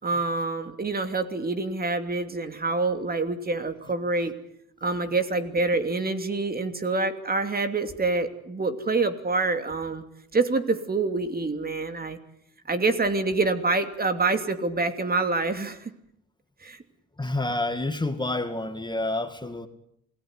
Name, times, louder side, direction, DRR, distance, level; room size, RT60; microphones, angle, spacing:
voice 1, 0.0-4.3 4.8-10.0 10.3-12.2 12.6-15.9 16.6-16.8, right 3 dB, 30° right, 9 dB, 2.9 m, -26 dB
voice 2, 17.2-19.7, left 2 dB, 15° left, 8 dB, 2.3 m, -28 dB
28.0 x 17.5 x 9.7 m, 0.76 s
cardioid pair, 90°, 30 cm